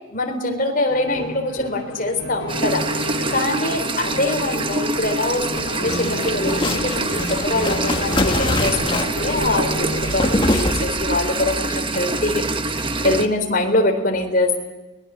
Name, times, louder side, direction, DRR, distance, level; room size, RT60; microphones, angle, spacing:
voice 1, 0.1-14.6, left 2 dB, 40° left, 4 dB, 3.9 m, -24 dB
sound 1, 0.9-10.7, left 1 dB, 60° left, 4.4 m, -31 dB
sound 2, 2.5-13.3, right 2 dB, 25° right, 1.0 m, -25 dB
sound 3, 5.3-11.3, left 1 dB, 25° left, 1.9 m, -25 dB
24.5 x 21.0 x 7.6 m, 1.1 s
head